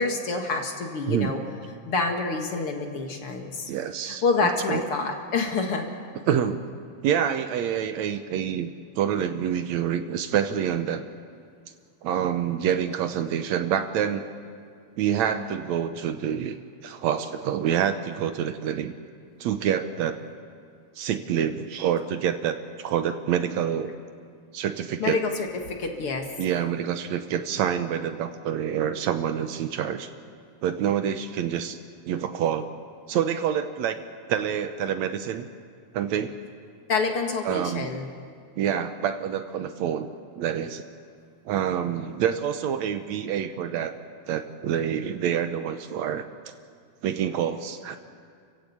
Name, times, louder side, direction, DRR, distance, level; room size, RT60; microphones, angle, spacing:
voice 1, 0.0-1.4 1.9-3.7 4.2-5.9 25.0-26.3 36.9-38.1, left 4 dB, 50° left, 3 dB, 2.3 m, -27 dB
voice 2, 3.7-4.8 6.3-6.7 7.0-8.7 9.0-11.0 12.0-14.2 15.0-16.6 16.8-18.9 19.4-20.2 21.0-23.9 24.5-25.2 26.4-30.1 30.6-31.8 32.1-32.7 33.1-34.0 34.3-35.5 35.9-36.3 37.4-37.9 38.6-40.1 40.4-40.8 41.5-43.9 44.3-46.3 47.0-48.0, right 9 dB, 70° right, 9 dB, 2.0 m, -27 dB
29.0 x 15.5 x 8.5 m, 2.1 s
omnidirectional pair, 3.5 m